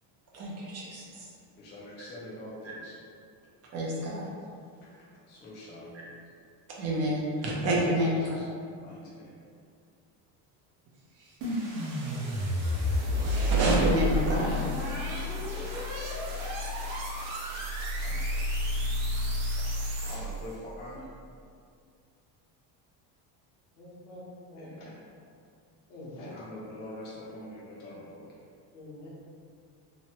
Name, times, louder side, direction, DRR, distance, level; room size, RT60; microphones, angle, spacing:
voice 1, 0.3-1.3 3.7-4.3 6.8-8.3 13.1-14.6, equal, 35° right, -5 dB, 0.5 m, -28 dB
voice 2, 1.5-3.0 4.8-4.9 5.2-6.1 7.9-8.5 8.8-9.3 12.5-13.0 15.4-15.9 18.0-18.4 20.0-21.1 24.6-25.0 26.2-28.3, left 1 dB, 25° left, -6 dB, 0.4 m, -45 dB
sound 1, 11.4-20.5, equal, 75° right, 0.8 m, -30 dB
voice 3, 23.8-24.9 25.9-26.5 28.7-29.1, left 1 dB, 75° left, -6 dB, 1.0 m, -45 dB
3.0 x 2.1 x 2.8 m, 2.3 s
cardioid pair, 145°, 44 cm